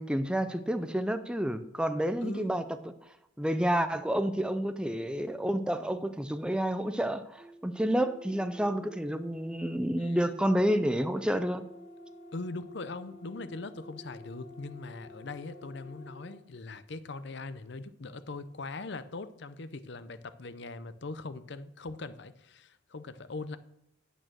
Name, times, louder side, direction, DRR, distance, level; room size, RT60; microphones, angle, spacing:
voice 1, 0.0-2.6 3.4-11.6, equal, 5° right, 9 dB, 0.5 m, -29 dB
voice 2, 2.2-2.6 10.0-10.2 12.3-23.6, left 3 dB, 60° left, 13 dB, 0.7 m, -41 dB
sound 1, 7.3-16.4, equal, 25° right, 4.0 m, -50 dB
9.0 x 8.6 x 6.2 m, 0.79 s
head